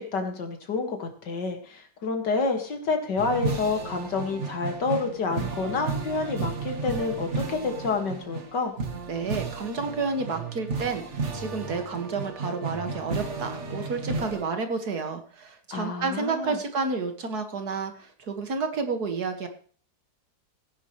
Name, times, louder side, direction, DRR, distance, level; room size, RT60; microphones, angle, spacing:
voice 1, 0.0-8.7 15.7-16.6, left 4 dB, 85° left, 4 dB, 2.6 m, -28 dB
sound 1, 3.2-14.4, right 4 dB, 45° right, 1.7 m, -33 dB
voice 2, 9.1-19.5, right 4 dB, 65° right, 6 dB, 2.3 m, -30 dB
17.0 x 10.0 x 3.2 m, 0.44 s
omnidirectional pair, 1.8 m